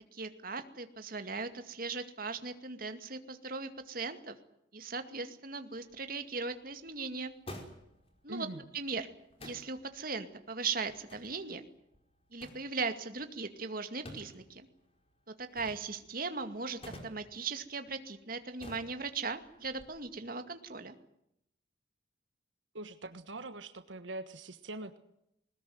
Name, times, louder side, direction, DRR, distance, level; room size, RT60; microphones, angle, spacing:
voice 1, 0.1-4.4 4.7-7.3 8.2-8.5 8.7-9.1 9.4-11.7 12.3-14.7 15.4-20.9, right 4 dB, 50° right, 8 dB, 2.3 m, -38 dB
sound 1, 5.7-19.8, left 1 dB, 30° left, 5.1 m, -54 dB
voice 2, 8.3-8.7 22.7-25.0, right 2 dB, 80° right, 9 dB, 1.4 m, -43 dB
21.0 x 20.0 x 9.4 m, 0.78 s
head